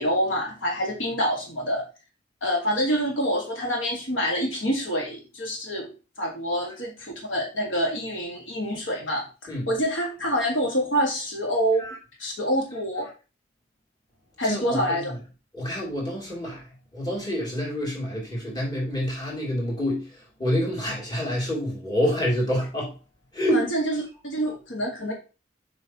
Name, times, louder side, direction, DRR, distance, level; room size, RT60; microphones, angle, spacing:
voice 1, 0.0-1.8 2.4-5.9 6.2-13.1 14.4-15.1 23.5-25.1, equal, 80° left, 1.8 m, -26 dB
voice 2, 14.4-15.1 15.5-16.6 16.9-20.1 20.4-22.9 23.3-23.7, equal, 20° left, 3.0 m, -27 dB
7.2 x 5.5 x 3.0 m
head